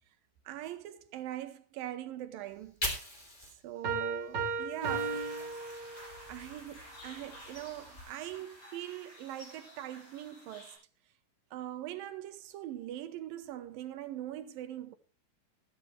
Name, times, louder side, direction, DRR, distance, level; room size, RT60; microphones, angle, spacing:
voice 1, 0.5-2.8 3.6-5.3 6.3-10.7 11.5-15.0, right 12 dB, 80° right, 2.7 m, -42 dB
Fire, 2.4-5.6 6.0-8.0, left 1 dB, 15° left, 2.8 m, -43 dB
sound 1, 3.8-6.3, right 5 dB, 35° right, 2.4 m, -36 dB
sound 2, 4.8-10.7, equal, 45° left, 8.9 m, -48 dB
15.0 x 13.0 x 3.2 m
omnidirectional pair, 4.0 m